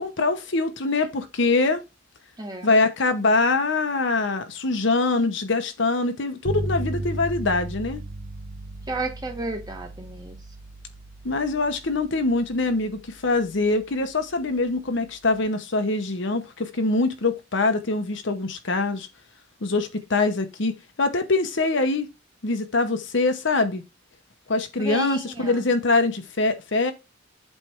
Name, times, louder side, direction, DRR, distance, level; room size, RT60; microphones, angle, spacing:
voice 1, 0.0-1.8 2.6-8.0 11.2-19.1 19.6-22.1 22.4-23.8 24.5-26.9, left 3 dB, 65° left, 0.9 m, -24 dB
voice 2, 2.4-2.7 8.9-10.4 24.8-25.7, right 2 dB, 20° right, 1.3 m, -32 dB
sound 1, 6.4-15.4, right 2 dB, 70° right, 1.3 m, -36 dB
7.9 x 3.3 x 4.4 m
head